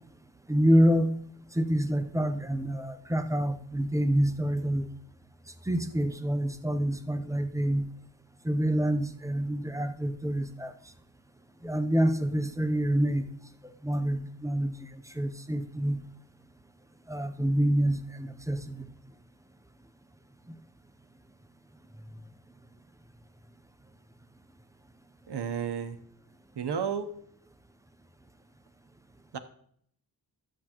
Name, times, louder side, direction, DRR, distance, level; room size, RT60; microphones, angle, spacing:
voice 1, 0.5-1.1 1.5-4.9 5.7-7.9 8.4-10.7 11.6-13.2 13.8-14.9 15.1-16.0 17.1-18.9, equal, 10° right, 9 dB, 0.6 m, -27 dB
voice 2, 25.3-26.0 26.6-27.1 29.3-29.4, right 7 dB, 75° right, 9 dB, 0.9 m, -32 dB
12.0 x 7.6 x 2.9 m, 0.64 s
wide cardioid pair, 95°, 41 cm